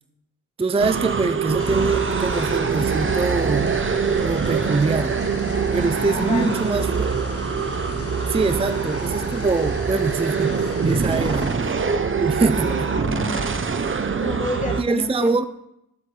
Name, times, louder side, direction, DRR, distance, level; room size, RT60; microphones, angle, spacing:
voice 1, 0.6-3.7 4.2-5.1 5.7-7.1 8.3-11.5 12.2-12.9 14.8-15.5, right 3 dB, 15° right, 11 dB, 0.5 m, -24 dB
sound 1, 0.8-14.8, right 5 dB, 35° right, 0.9 m, -24 dB
sound 2, 1.6-11.6, left 3 dB, 45° left, 1.5 m, -36 dB
voice 2, 4.6-5.1 6.0-6.9 11.2-11.7 12.4-13.5 14.2-15.5, left 2 dB, 20° left, 0 dB, 1.9 m, -31 dB
18.5 x 8.2 x 3.3 m, 0.86 s
cardioid pair, 60°, 34 cm